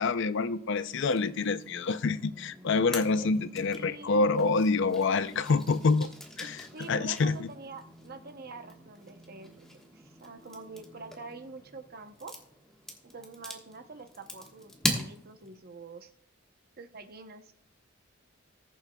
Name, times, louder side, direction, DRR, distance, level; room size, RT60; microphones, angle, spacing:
voice 1, 0.0-6.1 6.4-7.5, left 4 dB, 65° left, 13 dB, 0.5 m, -27 dB
sound 1, 0.9-15.6, equal, 5° left, 1.4 m, -42 dB
voice 2, 3.2-4.5 6.4-12.4 13.0-16.1 16.8-17.6, right 3 dB, 50° right, 8 dB, 0.8 m, -46 dB
20.0 x 7.4 x 2.3 m, 0.63 s
head